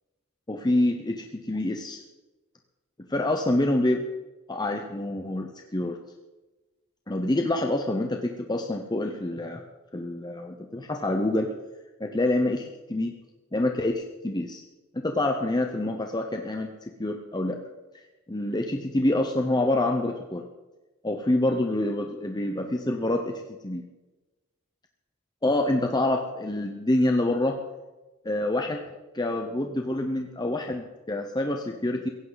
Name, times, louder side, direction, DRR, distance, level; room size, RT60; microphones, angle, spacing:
voice 1, 0.5-2.0 3.1-4.0 4.5-6.0 7.1-9.6 9.9-11.5 12.0-13.1 13.5-14.6 14.9-17.6 17.9-18.0 18.3-20.4 21.0-23.8 25.4-27.6 28.2-32.1, left 1 dB, 20° left, 4 dB, 0.9 m, -27 dB
16.5 x 16.0 x 4.1 m, 1.1 s
head